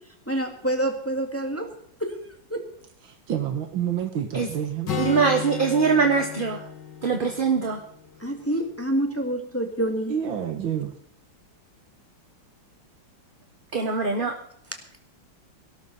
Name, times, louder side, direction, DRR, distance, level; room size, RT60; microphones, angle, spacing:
voice 1, 0.3-1.7 2.0-2.1 2.5-2.6 8.2-10.1, right 1 dB, 5° left, 4 dB, 1.8 m, -27 dB
voice 2, 3.1-4.9 10.1-10.9, right 9 dB, 80° right, 7 dB, 2.0 m, -28 dB
Acoustic guitar, 4.9-8.6, left 6 dB, 65° left, 2.5 m, -34 dB
voice 3, 5.0-6.6 7.0-7.8 13.7-14.3, right 5 dB, 30° right, 4 dB, 1.3 m, -22 dB
17.5 x 12.5 x 4.1 m, 0.66 s
omnidirectional pair, 2.1 m